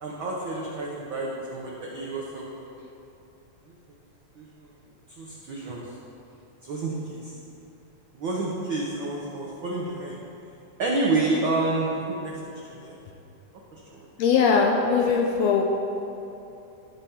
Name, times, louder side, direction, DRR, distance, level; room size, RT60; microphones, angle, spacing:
voice 1, 0.0-2.6 4.4-4.7 5.2-5.9 6.6-7.3 8.1-10.2 10.8-12.3 12.7-13.0 13.7-14.1, right 2 dB, 90° right, -3 dB, 1.0 m, -29 dB
voice 2, 14.2-15.6, left 5 dB, 75° left, 1 dB, 1.6 m, -20 dB
13.0 x 4.4 x 5.6 m, 2.9 s
omnidirectional pair, 3.5 m